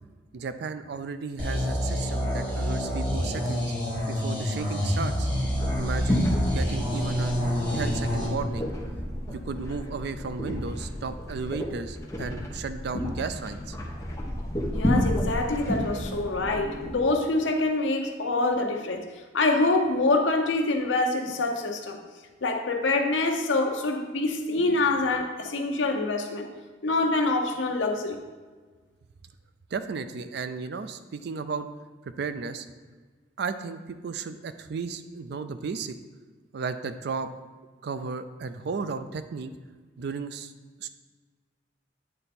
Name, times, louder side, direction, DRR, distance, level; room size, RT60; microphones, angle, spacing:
voice 1, 0.3-3.7 4.1-5.3 5.8-7.4 7.7-8.7 9.3-13.8 29.7-31.7 32.2-32.7 33.4-35.9 36.5-37.3 37.8-39.5 40.0-40.5 40.8-40.9, right 5 dB, 60° right, 0.4 m, -34 dB
sound 1, 1.4-8.3, equal, 25° right, 2.0 m, -28 dB
sound 2, 5.4-17.0, left 1 dB, 15° left, 0.8 m, -31 dB
voice 2, 14.7-19.1 19.3-22.0 22.4-26.5 26.8-28.2, left 2 dB, 75° left, 0.7 m, -25 dB
8.8 x 3.3 x 4.2 m
head